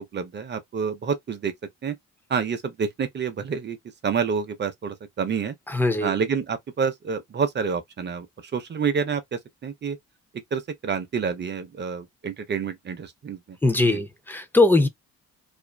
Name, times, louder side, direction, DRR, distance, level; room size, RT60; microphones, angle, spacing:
voice 1, 0.0-1.5 1.8-2.0 2.3-3.8 4.0-5.5 6.0-8.3 8.5-10.0 10.5-13.6 13.8-14.0, right 6 dB, 35° right, 0.7 m, -28 dB
voice 2, 5.7-6.1 13.6-14.9, left 2 dB, 5° left, 0.6 m, -20 dB
2.5 x 2.5 x 2.2 m
cardioid pair, 90°, 30 cm